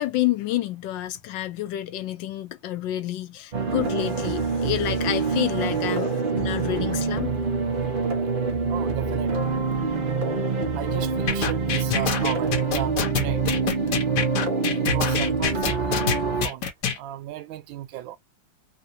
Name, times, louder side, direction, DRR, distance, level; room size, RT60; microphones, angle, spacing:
voice 1, 0.0-7.3, left 13 dB, 80° left, 1.3 m, -29 dB
sound 1, 3.5-16.5, right 4 dB, 50° right, 0.6 m, -25 dB
voice 2, 8.7-9.5 10.7-14.1 14.7-16.7 16.9-18.2, right 13 dB, 90° right, 1.4 m, -35 dB
sound 2, 11.3-17.0, left 7 dB, 65° left, 1.3 m, -26 dB
3.7 x 2.3 x 2.6 m
omnidirectional pair, 2.0 m